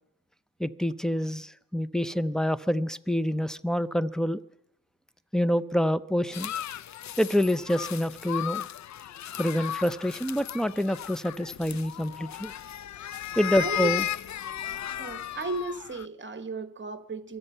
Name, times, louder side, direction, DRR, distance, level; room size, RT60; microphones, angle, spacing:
voice 1, 0.6-4.4 5.3-6.5 7.2-8.6 9.4-12.5 13.4-14.0, equal, ahead, 0.5 m, -27 dB
sound 1, 6.3-16.1, left 11 dB, 55° left, 0.5 m, -35 dB
voice 2, 13.5-13.9 15.0-17.4, right 3 dB, 35° right, 1.3 m, -35 dB
23.5 x 8.0 x 5.5 m
cardioid pair, 70°, 34 cm